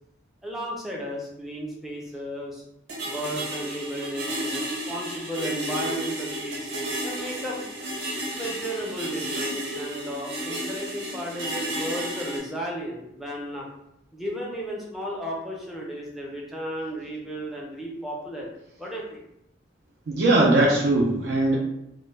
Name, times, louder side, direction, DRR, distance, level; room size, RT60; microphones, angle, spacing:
voice 1, 0.4-2.6 3.1-7.6 8.3-13.7 14.1-18.5 18.8-19.2, equal, ahead, -3 dB, 0.4 m, -34 dB
sound 1, 2.9-12.4, right 1 dB, 80° right, 0.8 m, -32 dB
voice 2, 20.1-21.6, right 2 dB, 65° right, -3 dB, 0.4 m, -20 dB
2.1 x 2.1 x 3.2 m, 0.82 s
head